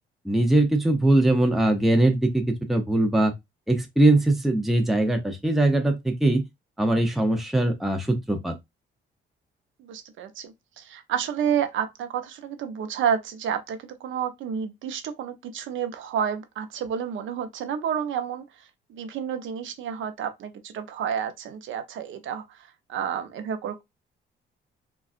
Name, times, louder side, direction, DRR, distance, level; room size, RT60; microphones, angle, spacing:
voice 1, 0.3-2.4 2.7-3.3 3.7-6.4 6.8-8.5, right 1 dB, ahead, 0.6 m, -21 dB
voice 2, 9.8-18.4 18.9-23.8, right 8 dB, 75° right, 0.7 m, -30 dB
3.6 x 2.3 x 2.4 m
cardioid pair, 90°, 20 cm